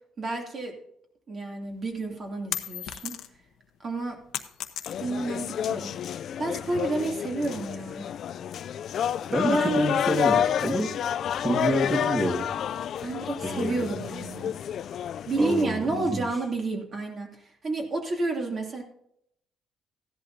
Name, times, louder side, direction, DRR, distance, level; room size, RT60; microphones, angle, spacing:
voice 1, 0.2-0.7 1.3-3.2 3.8-4.2 5.0-8.1 9.5-9.9 11.5-11.6 13.0-14.5 15.3-17.3 17.6-18.8, right 2 dB, 40° right, 2 dB, 2.8 m, -30 dB
sound 1, 1.7-3.5 3.9-5.3, left 11 dB, 80° left, 0.9 m, -35 dB
sound 2, 4.9-15.6, left 9 dB, 60° left, 0.3 m, -29 dB
voice 2, 9.3-10.9 11.4-12.5 13.4-13.9 15.4-16.2, right 1 dB, 20° right, -2 dB, 2.0 m, -28 dB
15.0 x 11.0 x 2.8 m, 0.72 s
cardioid pair, 125°, 0 cm